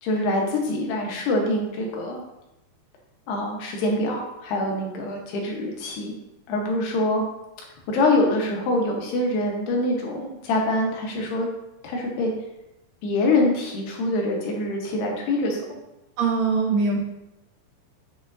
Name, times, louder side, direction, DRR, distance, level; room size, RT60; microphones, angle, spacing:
voice 1, 0.0-2.2 3.3-6.1 6.5-7.2 7.9-11.5 11.8-12.3 13.0-15.8, left 2 dB, 80° left, 0 dB, 3.4 m, -24 dB
voice 2, 16.2-17.0, right 4 dB, 75° right, -1 dB, 2.1 m, -22 dB
8.7 x 7.2 x 2.8 m, 0.91 s
omnidirectional pair, 4.7 m